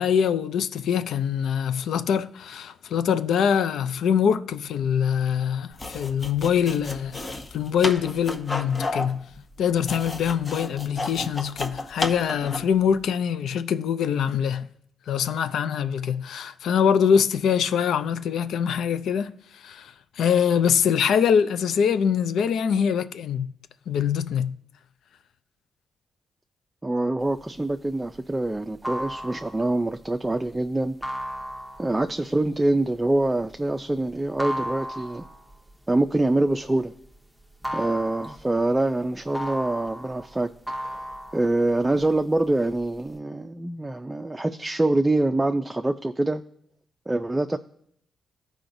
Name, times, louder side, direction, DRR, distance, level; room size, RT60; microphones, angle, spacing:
voice 1, 0.0-7.2 7.5-9.3 9.6-14.7 15.1-23.5 23.9-24.6, left 7 dB, 85° left, 0.4 m, -24 dB
sound 1, 5.7-12.8, left 2 dB, 35° left, 0.8 m, -32 dB
voice 2, 26.8-30.9 31.8-35.2 35.9-36.9 37.7-40.5 41.3-46.4 47.1-47.6, right 2 dB, 15° right, 0.4 m, -25 dB
sound 2, 27.3-37.1 37.4-42.2 42.6-43.2, equal, 5° left, 0.8 m, -35 dB
14.0 x 4.9 x 2.6 m
cardioid pair, 80°, 0 cm